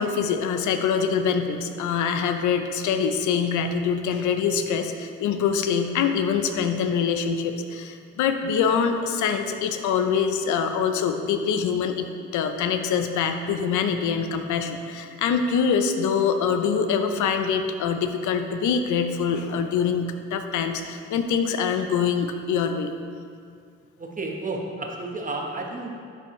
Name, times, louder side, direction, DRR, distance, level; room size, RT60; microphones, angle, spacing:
voice 1, 0.0-22.9, left 6 dB, 75° left, 7 dB, 0.6 m, -24 dB
voice 2, 24.0-25.9, right 2 dB, 25° right, 0 dB, 1.1 m, -31 dB
11.0 x 4.5 x 3.1 m, 2.2 s
cardioid pair, 90°, 30 cm